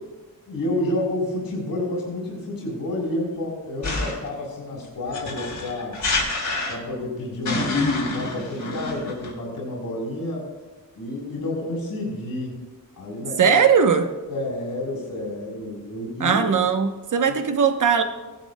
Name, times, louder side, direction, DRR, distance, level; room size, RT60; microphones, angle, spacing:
voice 1, 0.5-6.0 6.7-7.8 8.1-10.5 11.0-12.6 13.0-13.6 14.3-16.4, left 1 dB, 85° left, -3 dB, 4.1 m, -29 dB
sound 1, 3.8-4.3 5.1-7.0 7.4-9.3, left 3 dB, 60° left, 2.7 m, -26 dB
voice 2, 13.4-14.1 16.2-18.0, right 6 dB, 60° right, 7 dB, 0.9 m, -19 dB
18.0 x 10.5 x 2.2 m, 1.2 s
wide cardioid pair, 175°, 34 cm